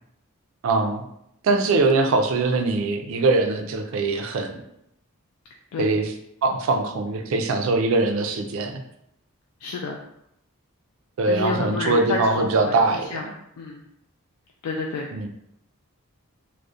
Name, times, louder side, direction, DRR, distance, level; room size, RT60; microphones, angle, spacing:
voice 1, 0.6-1.0 1.4-4.6 5.8-6.1 6.4-8.8 11.2-13.4 15.1-15.3, right 3 dB, 65° right, 4 dB, 0.3 m, -22 dB
voice 2, 9.6-10.0 11.3-13.3 13.6-13.8 14.6-15.1, left 3 dB, 90° left, 1 dB, 0.3 m, -29 dB
2.4 x 2.0 x 2.6 m, 0.76 s
head